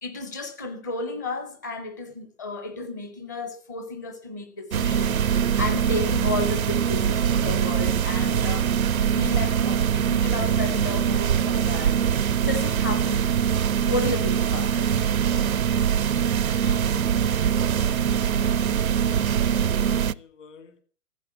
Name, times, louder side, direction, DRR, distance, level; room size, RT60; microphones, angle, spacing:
voice 1, 0.0-12.0 12.4-13.3 13.9-15.1, left 3 dB, 10° left, 0.6 m, -33 dB
sound 1, 4.7-20.1, right 8 dB, 65° right, 0.6 m, -23 dB
voice 2, 16.4-20.8, left 5 dB, 50° left, 1.8 m, -50 dB
14.5 x 8.1 x 7.2 m
figure-of-eight pair, 130°, 46 cm